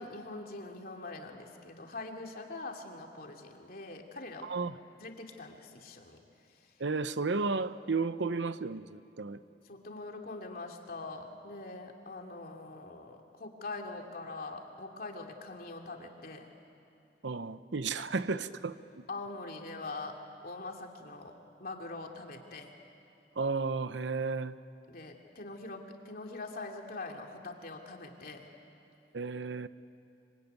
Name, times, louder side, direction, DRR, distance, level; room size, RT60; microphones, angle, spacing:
voice 1, 0.0-4.5 5.0-6.2 6.5-6.7 9.6-16.5 18.0-18.1 19.1-22.7 24.9-28.5, left 3 dB, 55° left, 2 dB, 2.7 m, -43 dB
voice 2, 4.4-4.7 6.8-9.4 17.2-18.8 23.4-24.6 29.1-29.7, right 4 dB, 85° right, 13 dB, 0.8 m, -33 dB
25.0 x 25.0 x 9.5 m, 2.7 s
head